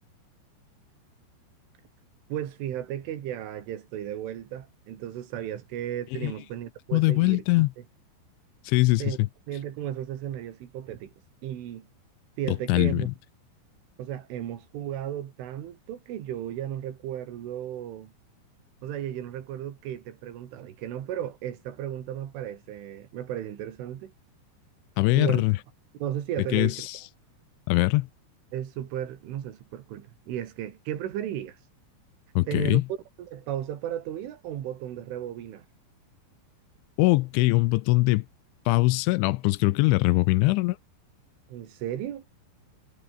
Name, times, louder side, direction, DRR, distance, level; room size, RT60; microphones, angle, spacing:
voice 1, 2.3-7.7 9.0-9.2 9.5-11.1 11.4-11.9 12.4-13.1 14.0-18.1 18.8-24.1 25.1-25.4 26.0-26.9 28.5-31.6 32.5-32.8 33.2-35.6 41.5-42.2, right 11 dB, 85° right, 4.9 m, -34 dB
voice 2, 6.9-7.7 8.7-9.3 12.7-13.1 25.0-25.6 26.5-27.0 27.7-28.1 32.4-32.8 37.0-38.3 38.7-40.8, left 21 dB, 80° left, 3.0 m, -22 dB
omnidirectional pair, 5.5 m